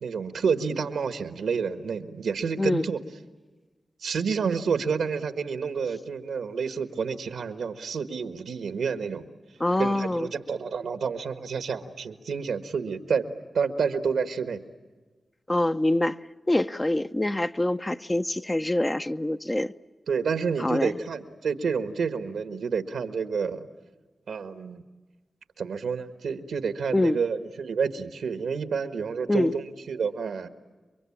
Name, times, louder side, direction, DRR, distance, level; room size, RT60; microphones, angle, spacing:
voice 1, 0.0-3.0 4.0-9.2 9.8-14.6 20.1-23.7 24.3-24.8 25.6-30.5, right 5 dB, 90° right, 1.4 m, -29 dB
voice 2, 9.6-10.3 15.5-16.2 16.5-19.7 20.6-20.9 26.9-27.2 29.3-29.5, left 1 dB, 20° left, 0.8 m, -25 dB
29.0 x 23.5 x 8.7 m
cardioid pair, 45°, 0 cm